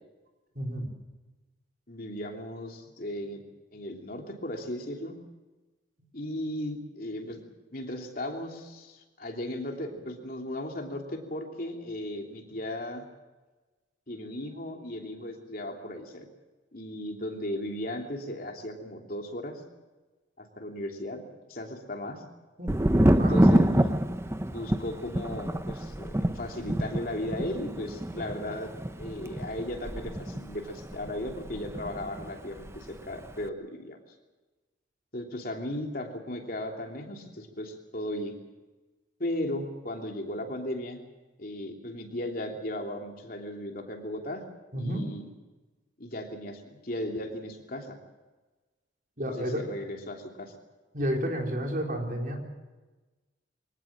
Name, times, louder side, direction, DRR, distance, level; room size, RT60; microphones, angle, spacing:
voice 1, 0.6-0.9 22.6-23.5 44.7-45.0 49.2-49.6 50.9-52.4, equal, 45° right, 1 dB, 4.3 m, -31 dB
voice 2, 1.9-3.4 3.7-5.1 6.1-7.4 7.7-13.0 14.1-16.3 16.7-19.6 20.4-22.2 23.1-23.9 24.4-28.7 29.0-34.0 35.1-38.3 39.2-41.0 41.4-44.4 44.7-45.2 46.0-48.0 49.3-50.5, left 1 dB, 50° left, 2 dB, 3.2 m, -36 dB
Thunder, 22.7-32.3 32.6-33.3, right 1 dB, 15° right, 0.7 m, -27 dB
23.5 x 18.5 x 7.5 m, 1.2 s
head